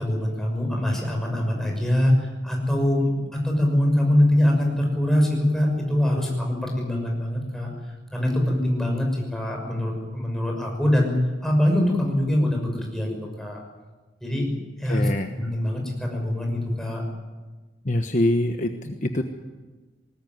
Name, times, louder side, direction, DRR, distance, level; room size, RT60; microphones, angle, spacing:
voice 1, 0.0-3.1 3.4-7.7 8.1-11.1 11.4-13.6 14.2-14.5 14.8-15.1 15.4-17.0, left 1 dB, 5° left, 0 dB, 6.2 m, -23 dB
voice 2, 14.9-15.3 17.8-19.2, left 1 dB, 45° left, 5 dB, 1.2 m, -24 dB
20.5 x 19.0 x 9.5 m, 1.3 s
head